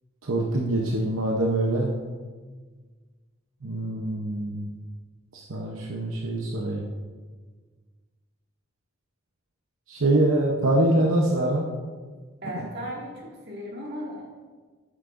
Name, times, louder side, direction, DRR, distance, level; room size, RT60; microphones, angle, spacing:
voice 1, 0.2-1.9 3.6-4.8 5.3-6.9 9.9-11.7 12.5-12.6, right 1 dB, 80° right, -1 dB, 0.9 m, -24 dB
voice 2, 12.4-14.3, equal, 50° right, -3 dB, 2.2 m, -36 dB
11.5 x 8.5 x 2.6 m, 1.5 s
head